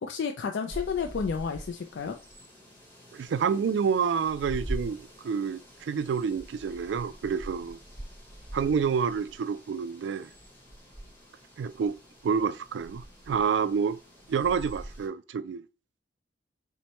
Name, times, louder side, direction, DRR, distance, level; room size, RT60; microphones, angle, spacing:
voice 1, 0.0-2.2, left 6 dB, 75° left, 0.4 m, -31 dB
sound 1, 0.7-15.1, right 1 dB, 10° left, 1.0 m, -44 dB
voice 2, 3.1-7.8 8.5-10.3 11.6-12.0 12.2-14.0 14.3-15.6, right 6 dB, 70° right, 0.3 m, -28 dB
4.5 x 2.1 x 4.1 m
head